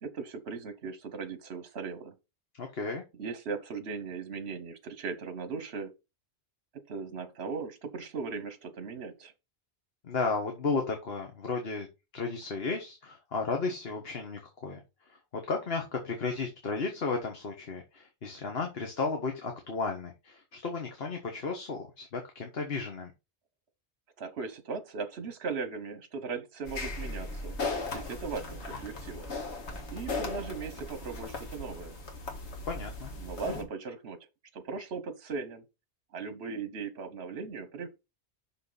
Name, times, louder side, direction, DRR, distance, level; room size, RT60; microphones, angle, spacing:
voice 1, 0.0-2.1 3.1-5.9 6.9-9.3 24.2-27.6 27.9-29.3 29.9-32.0 33.2-34.2 34.5-35.6 36.1-37.9, right 5 dB, 70° right, 1.3 m, -38 dB
voice 2, 2.6-3.0 10.0-11.9 12.1-14.8 15.5-23.1 32.7-33.1, left 4 dB, 65° left, 1.5 m, -33 dB
sound 1, 26.6-33.6, left 3 dB, 85° left, 2.1 m, -37 dB
6.2 x 5.9 x 4.0 m
omnidirectional pair, 1.1 m